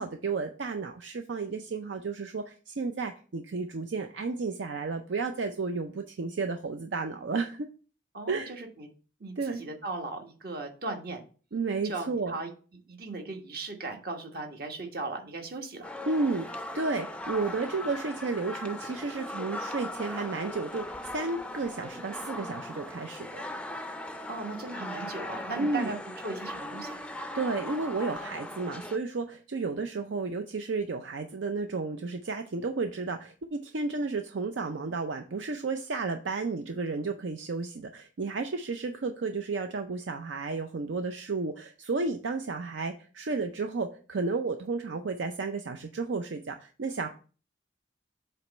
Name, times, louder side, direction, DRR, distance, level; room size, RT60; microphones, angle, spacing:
voice 1, 0.0-7.7 8.3-8.5 9.4-9.6 11.5-12.3 16.1-23.4 23.8-23.9 25.6-25.9 27.3-47.1, right 3 dB, 75° right, 6 dB, 0.5 m, -32 dB
voice 2, 8.1-8.9 9.2-11.2 11.8-12.5 12.9-15.9 24.3-26.0 26.2-27.0, right 3 dB, 50° right, 3 dB, 1.2 m, -37 dB
sound 1, 15.8-29.0, left 1 dB, 5° left, 0.4 m, -39 dB
7.5 x 3.0 x 5.3 m, 0.38 s
head